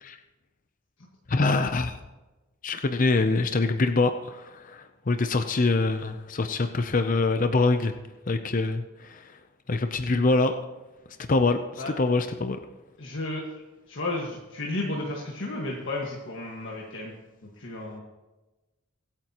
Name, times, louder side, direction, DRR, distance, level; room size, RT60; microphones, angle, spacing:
voice 1, 1.3-2.0 2.6-7.9 8.3-9.2 9.7-10.6 11.3-12.6, left 3 dB, 40° left, 8 dB, 0.6 m, -24 dB
voice 2, 13.0-13.4 13.9-17.1 17.6-18.0, left 2 dB, 60° left, -2 dB, 1.7 m, -33 dB
24.0 x 8.8 x 3.0 m, 1.1 s
head